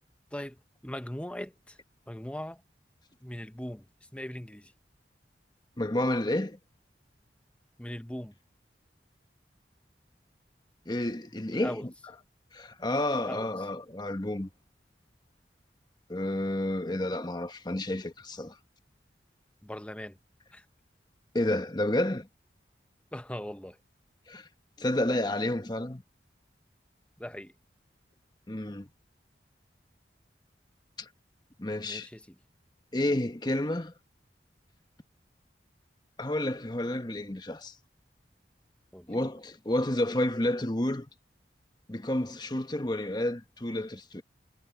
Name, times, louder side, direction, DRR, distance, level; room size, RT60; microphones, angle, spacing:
voice 1, 0.3-1.8 2.1-2.6 3.2-3.9 4.1-4.7 7.8-8.4 11.5-11.9 13.1-13.5 19.6-20.2 20.5-20.6 23.1-23.8 27.2-27.5 31.8-32.4 38.9-39.1, left 1 dB, 5° left, 0.9 m, -40 dB
voice 2, 5.8-6.6 10.9-11.9 12.5-14.5 16.1-18.5 21.3-22.3 24.3-24.5 24.8-26.0 28.5-28.9 31.0-31.1 31.6-32.1 32.9-33.9 36.2-37.7 39.1-41.1 41.9-44.2, left 1 dB, 25° left, 1.2 m, -30 dB
head